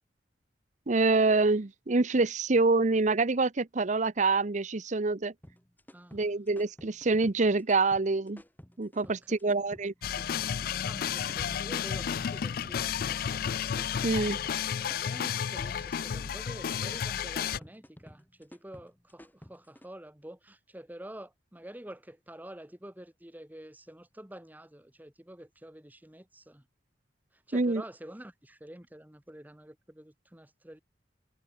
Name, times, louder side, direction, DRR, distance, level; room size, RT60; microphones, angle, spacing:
voice 1, 0.9-5.3 6.1-8.4 8.8-9.9 14.0-14.4 27.5-27.8, right 3 dB, 45° right, 0.8 m, -26 dB
sound 1, 5.4-19.9, equal, 10° left, 5.0 m, -53 dB
voice 2, 5.9-6.2 9.0-9.1 9.4-9.5 10.8-13.4 14.8-26.6 27.5-30.8, right 1 dB, 10° right, 1.5 m, -48 dB
sound 2, 10.0-17.6, left 8 dB, 55° left, 0.4 m, -32 dB
head